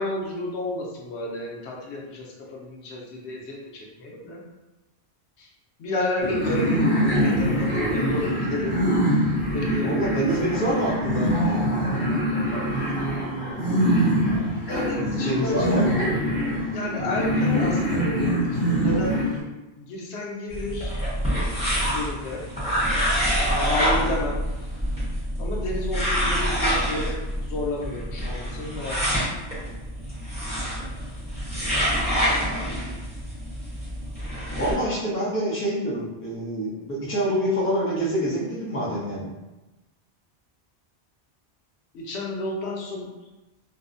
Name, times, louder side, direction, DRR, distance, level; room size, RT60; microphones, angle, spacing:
voice 1, 0.0-4.4 5.4-5.5 5.8-6.8 7.2-8.8 9.5-10.5 14.7-15.9 16.7-19.2 19.8-21.1 21.9-22.4 23.3-24.4 25.4-29.3 41.9-43.1, left 2 dB, 85° left, -2 dB, 0.9 m, -31 dB
sound 1, 6.2-19.4, equal, 50° left, 1.0 m, -24 dB
voice 2, 9.8-11.5 15.2-15.8 16.1-16.3 34.6-39.3, right 1 dB, 15° left, -7 dB, 0.5 m, -26 dB
sound 2, 20.5-34.7, equal, 5° right, 0.9 m, -26 dB
2.5 x 2.0 x 2.4 m, 1.0 s
omnidirectional pair, 1.1 m